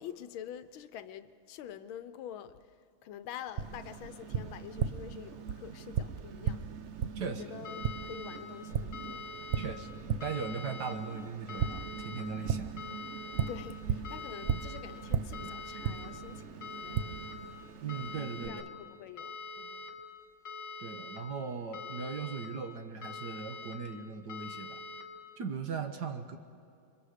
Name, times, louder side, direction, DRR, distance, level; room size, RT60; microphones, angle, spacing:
voice 1, 0.0-6.7 7.3-9.2 13.5-17.3 18.4-19.9, left 9 dB, 80° left, 1.5 m, -46 dB
Tap, 3.6-18.5, right 7 dB, 80° right, 0.6 m, -37 dB
sound 1, 7.6-8.4 8.9-9.7 10.2-10.9 11.5-12.2 12.8-13.5 14.0-14.8 15.3-16.1 16.6-17.3 17.9-18.6 19.2-19.9 20.4-21.2 21.7-22.5 23.0-23.7 24.3-25.0, left 4 dB, 60° left, 2.6 m, -44 dB
voice 2, 9.6-9.9 10.2-12.7 17.8-18.7 20.8-24.8 25.4-26.4, right 5 dB, 60° right, 1.5 m, -38 dB
28.0 x 23.5 x 5.0 m
omnidirectional pair, 2.2 m